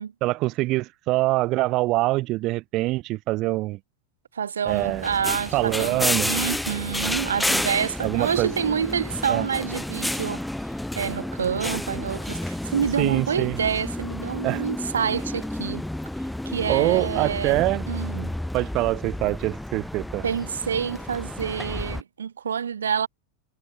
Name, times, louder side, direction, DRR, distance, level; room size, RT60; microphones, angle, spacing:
voice 1, 0.2-3.8 4.7-5.1 5.5-6.3 8.0-8.5 9.3-9.4 13.0-13.6 14.4-14.6 16.7-17.8 18.5-20.2, right 19 dB, 40° right, 0.7 m, -24 dB
voice 2, 4.3-10.4 11.0-15.8 16.4-18.3 20.2-23.1, right 7 dB, 70° right, 1.0 m, -27 dB
sound 1, 4.7-22.0, left 1 dB, 5° left, 0.9 m, -31 dB
figure-of-eight pair, 90°, 0 cm